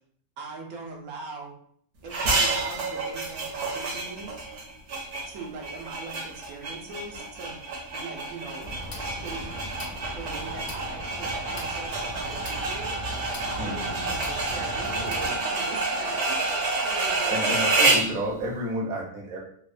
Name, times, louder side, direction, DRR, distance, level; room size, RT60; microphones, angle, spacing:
voice 1, 0.4-1.5 2.0-4.3 5.2-7.6 7.9-8.7 9.0-9.5 10.1-13.0 13.5-16.6 16.8-17.5, right 3 dB, 85° right, 0 dB, 1.2 m, -40 dB
sound 1, 2.1-18.2, right 2 dB, 65° right, 0.9 m, -29 dB
sound 2, 8.6-15.3, equal, 55° left, 0.5 m, -39 dB
voice 2, 13.6-13.9 17.3-19.4, equal, 45° right, -1 dB, 0.6 m, -31 dB
3.0 x 2.0 x 2.5 m, 0.63 s
omnidirectional pair, 1.5 m